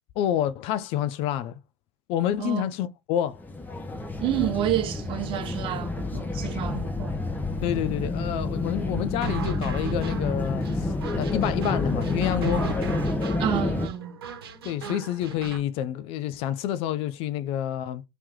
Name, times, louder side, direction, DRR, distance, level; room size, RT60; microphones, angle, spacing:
voice 1, 0.2-1.6 2.1-3.4 7.6-12.7 14.6-18.0, left 11 dB, 50° left, 0.5 m, -28 dB
sound 1, 3.3-13.9, left 2 dB, 15° left, 0.9 m, -29 dB
voice 2, 4.2-7.2 13.4-14.2, right 12 dB, 45° right, 1.1 m, -29 dB
sound 2, 9.2-15.6, right 4 dB, 80° right, 1.0 m, -37 dB
3.0 x 2.9 x 3.7 m
hypercardioid pair, 90°, 12 cm